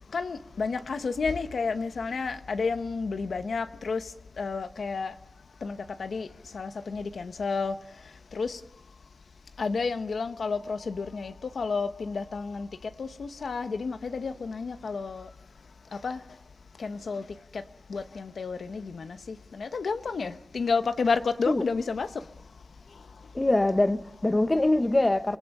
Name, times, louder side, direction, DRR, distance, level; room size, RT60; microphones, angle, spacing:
voice 1, 0.1-4.0 4.4-5.1 5.6-6.3 6.5-7.7 8.3-8.6 9.6-12.7 13.0-15.3 16.0-16.2 16.8-17.2 17.9-19.2 19.6-22.1, left 4 dB, 85° left, 0.9 m, -30 dB
voice 2, 23.3-25.4, left 2 dB, 25° left, 0.9 m, -23 dB
26.5 x 19.0 x 5.4 m
wide cardioid pair, 95°, 0 cm